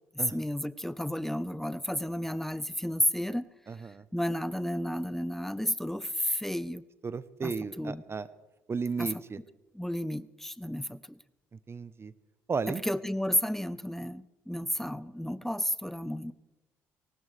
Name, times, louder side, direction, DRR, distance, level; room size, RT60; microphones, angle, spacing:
voice 1, 0.3-3.5 4.1-6.8 7.4-8.0 9.0-9.1 9.7-11.2 12.7-16.3, equal, 5° left, 17 dB, 0.7 m, -32 dB
voice 2, 3.7-4.0 7.0-8.3 8.7-9.4 11.7-12.1 12.5-12.8, right 5 dB, 35° right, 15 dB, 0.8 m, -34 dB
19.0 x 18.5 x 3.3 m, 1.1 s
hypercardioid pair, 50°, 8 cm